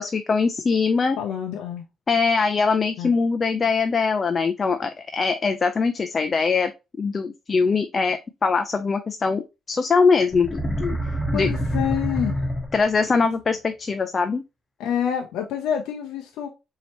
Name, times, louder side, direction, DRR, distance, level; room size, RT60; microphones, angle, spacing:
voice 1, 0.0-1.2 2.1-6.7 7.0-9.4 9.7-11.0 11.3-11.5 12.7-14.4, left 4 dB, 40° left, 0.4 m, -22 dB
voice 2, 1.2-1.8 3.0-3.1 11.3-12.4 14.8-16.5, left 9 dB, 90° left, 0.5 m, -27 dB
sound 1, 10.3-13.1, equal, 20° left, 1.1 m, -26 dB
4.3 x 2.8 x 2.8 m
cardioid pair, 90°, 0 cm